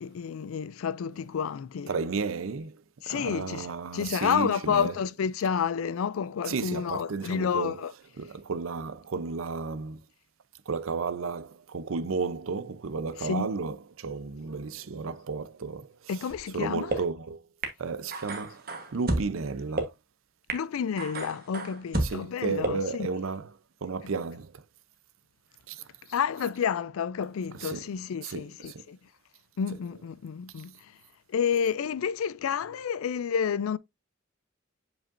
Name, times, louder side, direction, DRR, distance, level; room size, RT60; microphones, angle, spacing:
voice 1, 0.0-1.9 3.0-3.7 3.9-7.9 13.2-13.5 16.1-16.9 20.5-23.1 26.1-29.0 29.6-30.7 31.3-33.8, left 7 dB, 90° left, 0.4 m, -30 dB
voice 2, 1.9-5.0 6.5-7.9 8.2-10.0 10.7-16.2 16.5-17.4 17.8-19.9 22.0-23.5 23.8-24.6 25.7-25.9 27.5-27.9 28.2-28.8, right 4 dB, 80° right, 0.6 m, -33 dB
sound 1, 16.3-16.4 16.9-17.0 17.6-17.7 18.1-19.3 19.8-19.9 20.5-20.6 21.0-22.1 22.6-22.7, right 2 dB, 45° right, 1.2 m, -30 dB
7.3 x 5.1 x 2.6 m
head